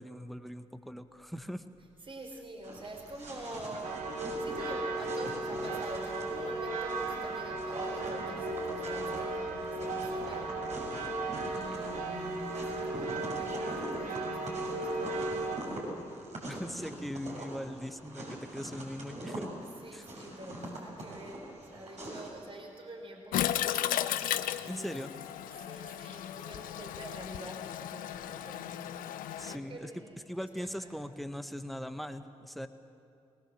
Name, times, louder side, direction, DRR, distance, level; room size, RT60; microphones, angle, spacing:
voice 1, 0.0-1.6 16.5-19.5 19.9-20.1 24.7-25.1 29.4-29.9 30.3-32.7, equal, ahead, 8 dB, 1.6 m, -40 dB
voice 2, 2.0-10.8 11.5-15.9 16.4-17.1 19.8-24.0 24.6-25.0 25.5-29.1 29.4-30.9, right 1 dB, 40° right, 2 dB, 4.2 m, -46 dB
sound 1, 2.6-22.4, right 1 dB, 55° right, 7.1 m, -44 dB
sound 2, 3.8-15.6, right 2 dB, 75° right, 2.8 m, -35 dB
Toilet flush, 23.3-29.6, left 12 dB, 80° left, 0.7 m, -35 dB
22.0 x 19.0 x 7.6 m, 2.5 s
supercardioid pair, 45°, 14 cm